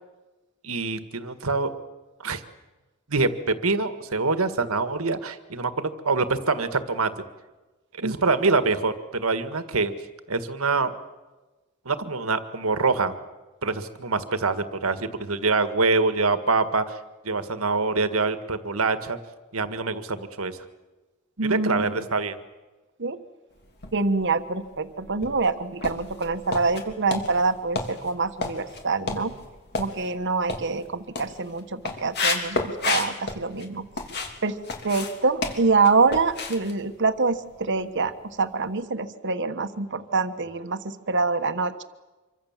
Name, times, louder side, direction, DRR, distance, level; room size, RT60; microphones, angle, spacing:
voice 1, 0.6-1.7 2.2-2.4 3.1-7.1 8.0-9.9 10.3-10.9 11.8-13.1 13.6-17.0 17.2-19.2 19.5-20.6 21.4-22.4, right 3 dB, 75° right, 10 dB, 1.8 m, -25 dB
voice 2, 21.4-21.9 23.0-23.2 23.9-29.3 29.8-33.9 34.4-34.6 34.8-38.1 38.4-41.8, right 4 dB, 55° right, 10 dB, 1.4 m, -25 dB
sound 1, 23.7-24.4 24.9-34.4 34.6-37.8 38.1-38.3 38.7-38.8, left 3 dB, 50° left, 3.3 m, -32 dB
26.0 x 24.0 x 7.5 m, 1.2 s
head